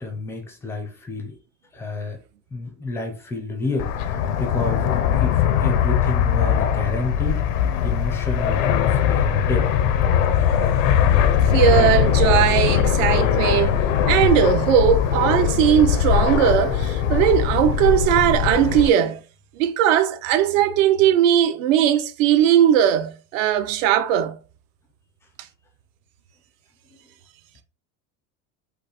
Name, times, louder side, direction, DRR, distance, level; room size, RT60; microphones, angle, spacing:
voice 1, 0.0-1.3 1.7-2.2 2.5-7.4 7.8-9.7, left 2 dB, 5° left, 0.5 m, -30 dB
Fixed-wing aircraft airplane, 3.8-18.9, left 9 dB, 75° left, 0.7 m, -20 dB
voice 2, 11.5-13.8 14.1-19.2 19.6-24.4, right 10 dB, 70° right, 0.8 m, -18 dB
5.5 x 2.1 x 4.3 m
cardioid pair, 180°, 40 cm